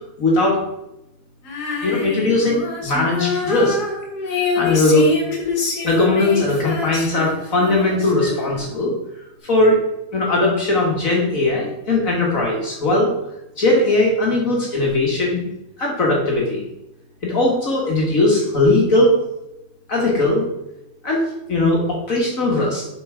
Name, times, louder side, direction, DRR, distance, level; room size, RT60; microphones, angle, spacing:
voice 1, 0.2-0.6 1.8-3.8 4.6-5.1 5.8-8.9 9.4-9.8 10.1-13.1 13.6-15.4 15.8-16.6 17.2-19.1 19.9-20.5 21.0-22.9, left 2 dB, 55° left, -2 dB, 1.9 m, -19 dB
Female singing, 1.4-8.8, left 4 dB, 80° left, 2.0 m, -26 dB
7.7 x 4.4 x 4.9 m, 0.88 s
omnidirectional pair, 1.7 m